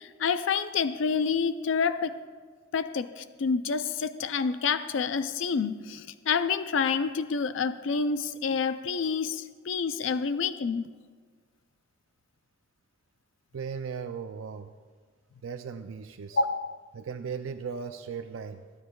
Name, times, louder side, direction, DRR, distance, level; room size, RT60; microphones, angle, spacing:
voice 1, 0.0-2.2 2.7-10.9 16.3-16.7, left 5 dB, 70° left, 12 dB, 0.4 m, -28 dB
voice 2, 13.5-14.7 15.4-16.4 16.9-18.6, right 6 dB, 85° right, 7 dB, 0.4 m, -37 dB
26.0 x 9.7 x 2.3 m, 1.5 s
head